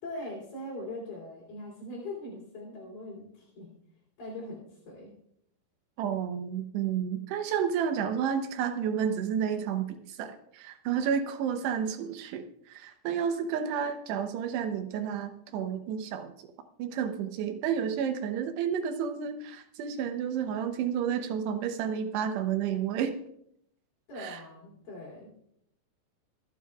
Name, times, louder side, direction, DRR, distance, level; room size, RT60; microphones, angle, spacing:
voice 1, 0.0-3.7 4.2-5.1 24.1-25.5, left 1 dB, 50° left, -5 dB, 4.6 m, -41 dB
voice 2, 6.0-16.3 16.8-23.1 24.2-24.4, right 8 dB, 80° right, 7 dB, 2.5 m, -31 dB
27.0 x 9.2 x 2.3 m, 0.70 s
omnidirectional pair, 5.8 m